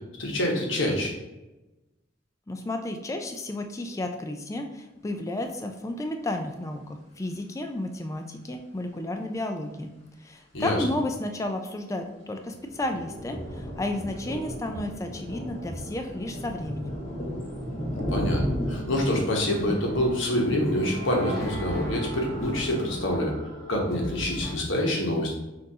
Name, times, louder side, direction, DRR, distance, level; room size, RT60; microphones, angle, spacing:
voice 1, 0.2-1.1 10.5-10.8 17.9-18.4 18.7-23.3 23.7-25.3, left 1 dB, 80° left, 0 dB, 1.0 m, -26 dB
voice 2, 2.5-9.9 10.2-17.0, left 1 dB, 15° left, 5 dB, 0.3 m, -32 dB
sound 1, 12.4-23.2, equal, 30° left, 1.1 m, -35 dB
sound 2, 17.1-24.5, equal, 5° right, 1.4 m, -39 dB
5.9 x 2.5 x 2.8 m, 1.0 s
head